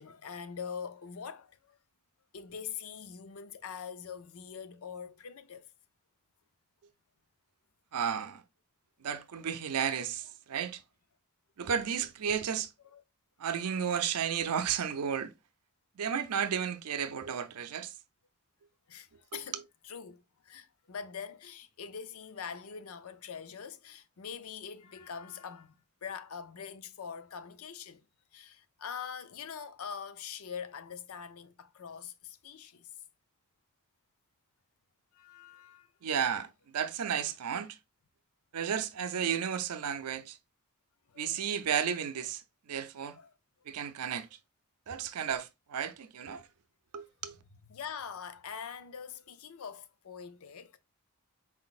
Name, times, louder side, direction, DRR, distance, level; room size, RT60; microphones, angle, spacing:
voice 1, 0.0-1.8 2.3-5.7 12.8-13.0 13.5-13.7 18.9-28.0 28.3-32.9 35.1-35.9 41.1-41.5 43.1-43.3 47.7-50.8, left 7 dB, 70° left, 0.5 m, -44 dB
voice 2, 7.9-8.4 9.0-10.8 11.6-12.7 13.4-15.3 16.0-17.9 19.3-19.6 36.0-37.8 38.5-40.4 41.2-42.4 42.7-43.2 43.7-44.3 44.9-46.4 46.9-47.4, right 8 dB, 85° right, 0.5 m, -33 dB
4.4 x 3.9 x 2.4 m
head